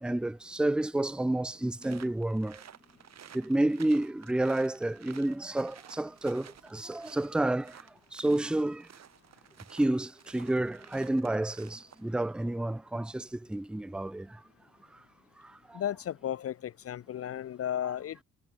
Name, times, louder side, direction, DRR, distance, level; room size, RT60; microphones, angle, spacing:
voice 1, 0.0-2.6 3.3-7.7 8.1-8.9 9.7-14.4 15.7-15.8, right 1 dB, 5° right, 0.6 m, -30 dB
sound 1, 1.8-12.1, right 9 dB, 60° right, 7.4 m, -54 dB
voice 2, 15.7-18.2, left 10 dB, 50° left, 0.7 m, -34 dB
cardioid pair, 90°, 30 cm